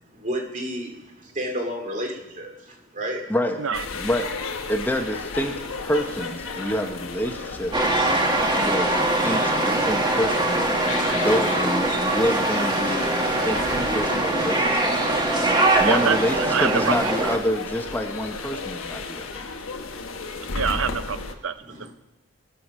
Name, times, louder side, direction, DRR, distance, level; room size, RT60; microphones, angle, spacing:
voice 1, 0.1-3.3 21.6-21.9, equal, 35° right, 2 dB, 2.4 m, -31 dB
sound 1, 3.7-21.3, left 4 dB, 75° left, 1.2 m, -34 dB
voice 2, 3.9-4.3 4.7-7.7 8.5-10.6 11.1-15.1 15.8-19.4, equal, 10° left, 5 dB, 0.9 m, -27 dB
sound 2, 7.7-17.4, right 2 dB, 20° right, 1.6 m, -22 dB
voice 3, 15.8-17.1 20.5-21.6, right 6 dB, 65° right, 12 dB, 0.7 m, -25 dB
21.0 x 7.1 x 6.2 m, 1.1 s
head